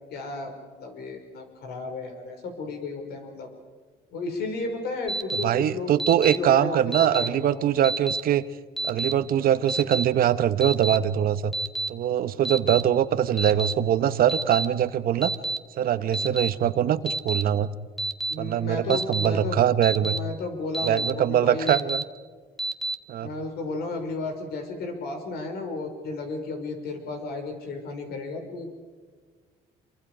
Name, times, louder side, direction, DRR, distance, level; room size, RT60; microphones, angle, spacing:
voice 1, 0.1-3.5 4.1-5.9 6.4-7.7 14.0-14.4 18.3-21.8 23.2-28.7, left 3 dB, 70° left, 4 dB, 5.8 m, -33 dB
Alarm, 5.1-5.4 6.0-6.4 6.9-7.3 7.8-8.2 8.8-9.1 9.7-10.0 10.6-11.0 11.5-11.9 12.4-12.8 13.4-13.7 14.3-14.6 15.2-15.6 16.1-16.5 17.1-17.4 18.0-18.3 18.9-19.3 19.8-20.2 20.7-21.1 21.7-22.0 22.6-22.9, right 2 dB, ahead, 1.5 m, -28 dB
voice 2, 5.4-8.4 8.8-11.5 11.9-15.3 15.8-17.7 18.4-20.2 20.9-22.0 23.1-23.3, right 10 dB, 60° right, 13 dB, 1.1 m, -23 dB
27.0 x 24.0 x 5.1 m, 1.5 s
cardioid pair, 110°, 17 cm